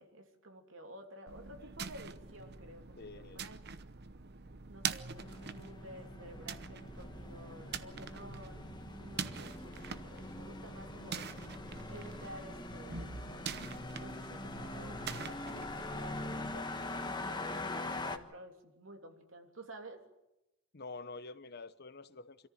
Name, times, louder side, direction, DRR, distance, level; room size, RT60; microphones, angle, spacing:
voice 1, 0.0-3.6 4.7-11.4 11.9-13.1 14.0-20.0, right 1 dB, 85° right, 3.1 m, -52 dB
sound 1, 1.3-16.6, right 6 dB, 55° right, 0.9 m, -45 dB
voice 2, 3.0-3.4 20.7-22.5, left 3 dB, 55° left, 1.0 m, -48 dB
sound 2, 5.1-18.2, left 2 dB, 25° left, 1.3 m, -43 dB
26.0 x 14.0 x 9.4 m
head